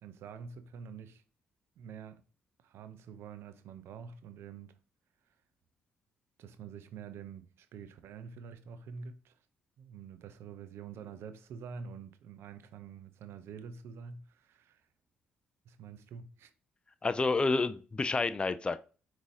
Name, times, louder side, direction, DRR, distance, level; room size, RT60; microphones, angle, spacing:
voice 1, 0.0-1.2 1.8-2.2 2.6-4.8 6.4-9.4 9.8-14.9 15.7-16.5, right 6 dB, 70° right, 0.5 m, -47 dB
voice 2, 17.0-18.8, left 3 dB, 20° left, 0.3 m, -29 dB
5.2 x 3.0 x 2.7 m
supercardioid pair, 55°, 4 cm